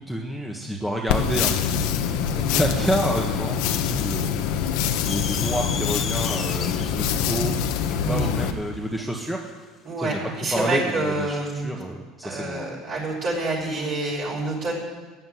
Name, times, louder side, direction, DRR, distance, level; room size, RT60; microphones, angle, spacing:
voice 1, 0.1-1.9 2.3-4.3 5.1-7.5 7.9-9.4 10.0-10.2 10.5-11.4 11.6-12.7, equal, ahead, -1 dB, 1.7 m, -28 dB
sound 1, 1.1-8.5, left 8 dB, 75° left, 1.2 m, -25 dB
sound 2, 5.0-9.6, left 6 dB, 35° left, 1.3 m, -35 dB
voice 2, 9.8-11.7 12.2-14.7, right 2 dB, 50° right, -5 dB, 6.2 m, -27 dB
14.5 x 10.0 x 9.6 m, 1.3 s
supercardioid pair, 110°, 0 cm